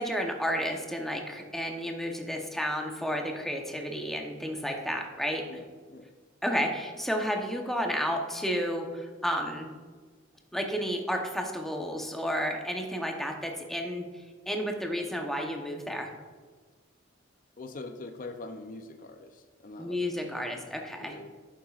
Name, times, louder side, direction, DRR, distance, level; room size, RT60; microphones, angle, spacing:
voice 1, 0.0-5.4 6.4-9.7 10.5-14.1 14.5-16.1 19.8-21.1, equal, ahead, 2 dB, 0.8 m, -31 dB
voice 2, 5.5-6.1 7.2-7.3 17.6-21.3, left 2 dB, 45° left, 8 dB, 0.5 m, -44 dB
10.5 x 7.3 x 2.4 m, 1.4 s
head